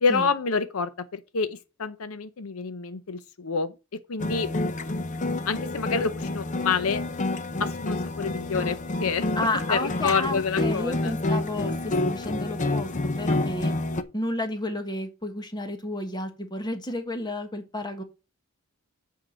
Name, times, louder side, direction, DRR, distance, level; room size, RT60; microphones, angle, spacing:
voice 1, 0.0-3.7 4.1-4.5 5.5-7.0 7.6-9.3 9.7-11.1, left 5 dB, 75° left, 0.7 m, -28 dB
sound 1, 4.2-14.0, left 2 dB, 35° left, 0.7 m, -28 dB
voice 2, 9.3-13.7 14.1-18.0, left 1 dB, 20° left, 1.4 m, -31 dB
7.6 x 4.7 x 6.2 m
head